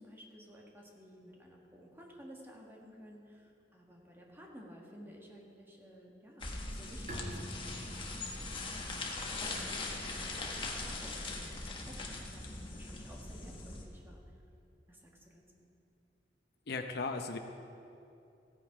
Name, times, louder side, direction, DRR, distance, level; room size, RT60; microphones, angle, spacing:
voice 1, 0.0-8.4 9.3-14.2 14.9-15.7, equal, 15° right, -1 dB, 1.6 m, -54 dB
sound 1, 6.4-13.8, left 2 dB, 30° left, 1.4 m, -41 dB
Bowed string instrument, 7.1-10.6, equal, 45° right, 1.7 m, -48 dB
voice 2, 16.7-17.4, left 4 dB, 65° left, 6 dB, 0.7 m, -36 dB
16.0 x 9.1 x 4.9 m, 2.7 s
head